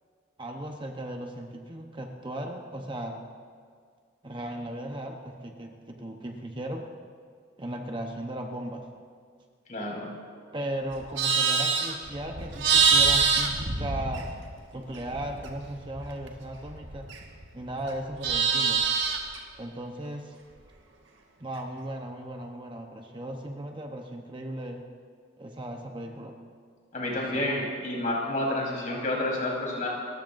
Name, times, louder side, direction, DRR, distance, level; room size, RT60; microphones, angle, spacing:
voice 1, 0.4-3.2 4.2-6.9 7.6-8.9 10.5-14.3 14.7-17.1 17.5-18.8 19.6-20.3 21.4-24.8 25.4-26.4 27.2-27.5, right 1 dB, 25° right, 2 dB, 0.9 m, -36 dB
voice 2, 9.7-10.1 26.9-29.9, left 1 dB, 40° left, -3 dB, 4.0 m, -29 dB
Livestock farm animals working animals, 10.9-14.6 14.9-17.5 17.8-19.4, right 5 dB, 65° right, 1.7 m, -25 dB
29.0 x 15.0 x 2.6 m, 2.1 s
head